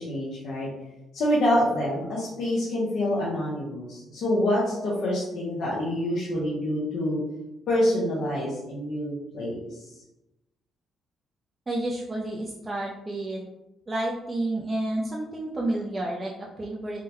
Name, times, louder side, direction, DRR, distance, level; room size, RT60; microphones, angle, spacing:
voice 1, 0.1-0.7 1.1-7.2 7.7-9.6, left 1 dB, 70° left, -7 dB, 0.8 m, -26 dB
voice 2, 11.7-13.5 13.9-17.0, right 1 dB, 25° right, -3 dB, 0.5 m, -30 dB
3.6 x 2.1 x 2.9 m, 0.93 s
cardioid pair, 90°, 0 cm